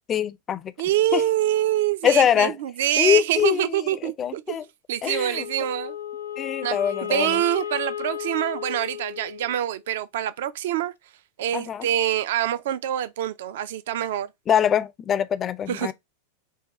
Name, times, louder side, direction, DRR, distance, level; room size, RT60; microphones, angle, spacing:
voice 1, 0.1-0.7 1.1-1.2 2.0-2.5 3.0-3.9 4.2-4.6 5.0-5.4 6.4-7.4 11.5-11.9 14.5-15.9, left 9 dB, 25° left, 0.4 m, -23 dB
voice 2, 0.8-4.6 4.9-6.0 6.6-10.9 11.4-14.3 15.7-15.9, right 12 dB, 55° right, 0.4 m, -25 dB
Wind instrument woodwind instrument, 5.3-9.7, left 10 dB, 75° left, 0.5 m, -34 dB
5.4 x 2.3 x 4.1 m
figure-of-eight pair, 90°, 0 cm